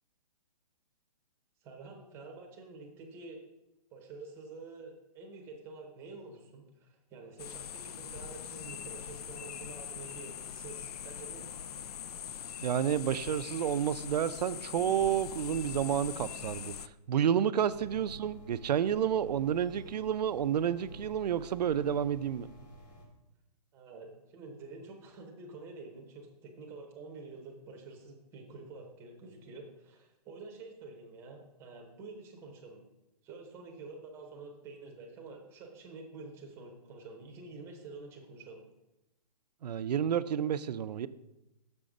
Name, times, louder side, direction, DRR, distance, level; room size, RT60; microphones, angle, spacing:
voice 1, 1.6-3.4 3.9-11.5 23.7-32.8 33.2-38.6, right 3 dB, 10° right, 1 dB, 0.8 m, -48 dB
sound 1, 7.4-16.9, left 9 dB, 65° left, 0.4 m, -42 dB
voice 2, 12.6-22.5 39.6-41.1, right 9 dB, 80° right, 14 dB, 0.5 m, -30 dB
sound 2, 17.6-23.1, left 1 dB, 85° left, 2.7 m, -50 dB
6.8 x 5.3 x 5.0 m, 0.92 s
hypercardioid pair, 165°, 21 cm